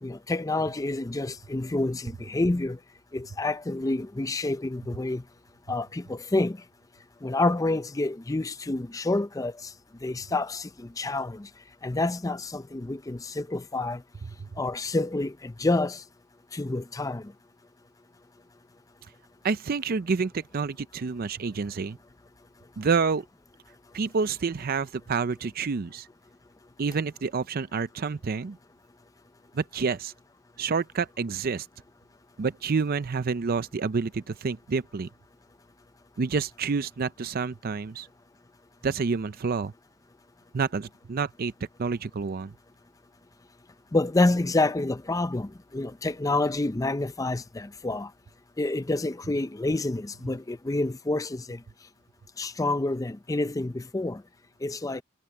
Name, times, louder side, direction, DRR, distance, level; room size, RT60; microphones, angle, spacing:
voice 1, 0.0-2.8 3.1-5.2 5.7-6.6 7.2-9.5 10.0-10.7 11.0-11.5 11.8-14.0 14.6-16.0 16.5-17.2 43.9-45.5 45.7-48.1 48.6-51.6 52.4-54.2 54.6-55.0, left 2 dB, 15° left, 0.5 m, -28 dB
voice 2, 19.4-22.0 22.8-23.2 23.9-26.1 26.8-28.6 29.5-30.1 30.6-31.7 32.4-35.1 36.2-38.1 38.8-39.7 40.5-41.5 41.8-42.5, right 5 dB, 45° right, 0.5 m, -28 dB
head